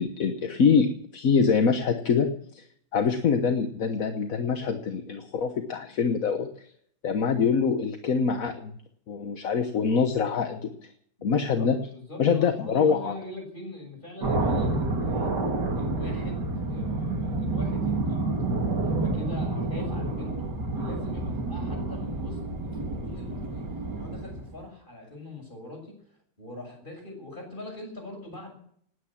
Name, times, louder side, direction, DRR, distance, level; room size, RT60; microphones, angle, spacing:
voice 1, 0.0-2.6 2.9-6.6 7.0-8.7 9.1-10.7 11.2-11.8 12.2-13.1, left 5 dB, 50° left, 6 dB, 1.3 m, -24 dB
voice 2, 11.2-15.3 15.8-18.2 18.8-22.4 22.7-23.7 23.9-28.5, left 2 dB, 25° left, 2 dB, 6.8 m, -42 dB
sound 1, 14.2-24.6, right 2 dB, 55° right, 3.1 m, -29 dB
19.0 x 9.6 x 7.3 m, 0.65 s
omnidirectional pair, 2.3 m